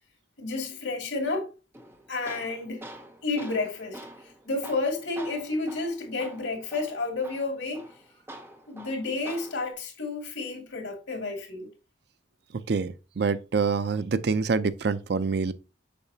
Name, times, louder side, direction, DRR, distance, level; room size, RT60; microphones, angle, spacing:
voice 1, 0.4-1.5 2.1-2.9 3.2-7.9 8.7-11.7, left 3 dB, 80° left, 2.3 m, -31 dB
Tools, 1.7-9.7, right 1 dB, 10° right, 0.7 m, -46 dB
voice 2, 12.7-15.5, right 4 dB, 55° right, 0.4 m, -26 dB
6.7 x 5.7 x 2.8 m
head